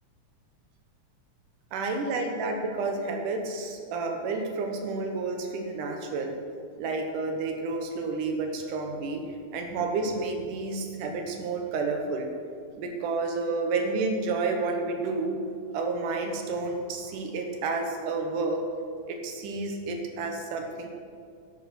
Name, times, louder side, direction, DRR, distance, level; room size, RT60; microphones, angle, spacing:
voice 1, 1.7-6.4 6.8-9.2 9.5-12.3 12.8-15.4 15.7-18.6 19.1-20.9, right 3 dB, 90° right, 3 dB, 2.7 m, -30 dB
11.5 x 10.5 x 4.3 m, 2.2 s
omnidirectional pair, 3.5 m